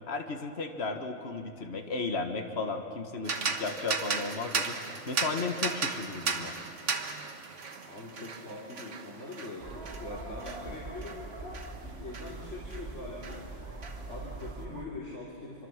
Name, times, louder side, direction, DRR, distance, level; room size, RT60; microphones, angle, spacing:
voice 1, 0.1-4.8 5.1-6.6, left 3 dB, 60° left, 4 dB, 1.9 m, -34 dB
sound 1, 3.2-12.9 13.2-14.5, right 4 dB, 80° right, 1.7 m, -36 dB
voice 2, 7.9-11.2 11.8-13.5 14.1-15.7, left 2 dB, 75° left, -5 dB, 3.6 m, -42 dB
sound 2, 9.6-14.9, right 2 dB, 55° right, 2.6 m, -42 dB
26.0 x 24.5 x 7.5 m, 2.9 s
omnidirectional pair, 1.2 m